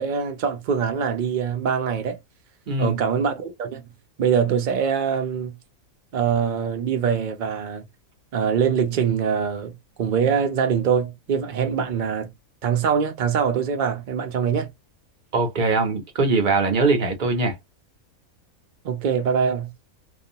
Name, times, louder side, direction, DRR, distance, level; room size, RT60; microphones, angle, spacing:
voice 1, 0.0-2.2 2.8-3.8 4.2-5.6 6.1-7.8 8.3-12.3 12.6-14.7 18.8-19.7, right 7 dB, 85° right, 0.4 m, -23 dB
voice 2, 15.3-17.6, right 3 dB, 45° right, 0.8 m, -21 dB
2.4 x 2.2 x 2.7 m
omnidirectional pair, 1.5 m